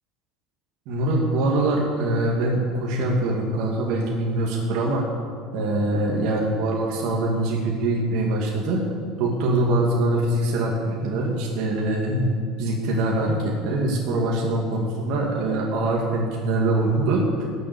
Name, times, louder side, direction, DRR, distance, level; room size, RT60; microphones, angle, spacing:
voice 1, 0.9-5.0 5.5-8.8 9.2-12.3 12.6-17.4, right 2 dB, 65° right, -2 dB, 2.4 m, -23 dB
17.5 x 7.4 x 7.2 m, 2.1 s
cardioid pair, 145°, 0 cm